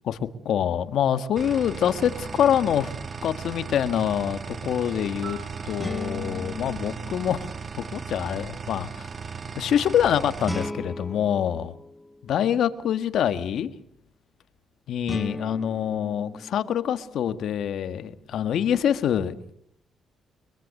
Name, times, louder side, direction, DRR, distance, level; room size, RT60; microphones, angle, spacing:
voice 1, 0.5-2.9 3.2-5.4 5.7-7.5 7.8-9.0 9.6-11.7 12.3-13.7 14.9-19.5, left 9 dB, 70° left, 12 dB, 1.6 m, -25 dB
sound 1, 1.4-10.7, right 5 dB, 40° right, 1.2 m, -37 dB
sound 2, 1.9-2.8 5.8-8.0 10.4-12.6 15.1-17.3, left 2 dB, 15° left, 1.4 m, -37 dB
Piano, 5.2-8.2 16.3-16.5, right 8 dB, 70° right, 4.4 m, -49 dB
23.5 x 23.0 x 6.7 m, 0.69 s
cardioid pair, 90°, 0 cm